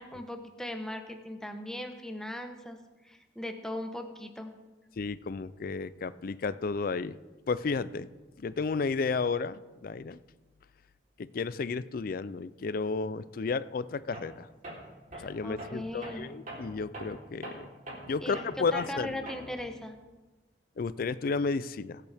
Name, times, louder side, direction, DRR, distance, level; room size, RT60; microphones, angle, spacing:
voice 1, 0.0-2.8 3.0-4.5 15.1-16.3 18.2-19.9, left 1 dB, 5° left, 5 dB, 1.0 m, -39 dB
voice 2, 5.0-7.2 7.5-8.1 8.4-10.2 11.2-14.5 15.2-17.7 18.1-19.3 20.8-22.0, left 4 dB, 50° left, 16 dB, 0.4 m, -32 dB
Tools, 14.1-14.4 14.6-19.7, right 1 dB, 45° right, 3.6 m, -43 dB
21.5 x 8.3 x 3.5 m, 1.2 s
head